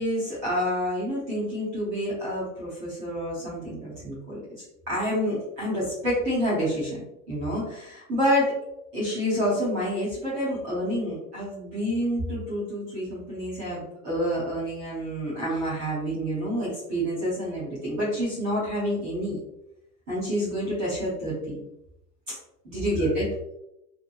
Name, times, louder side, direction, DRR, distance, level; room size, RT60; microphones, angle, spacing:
voice 1, 0.0-4.4 4.9-7.0 7.3-8.5 8.9-19.4 20.1-21.6 22.3-22.4 22.6-23.3, equal, 15° right, -9 dB, 0.4 m, -28 dB
2.8 x 2.1 x 2.5 m, 0.85 s
supercardioid pair, 155°, 50 cm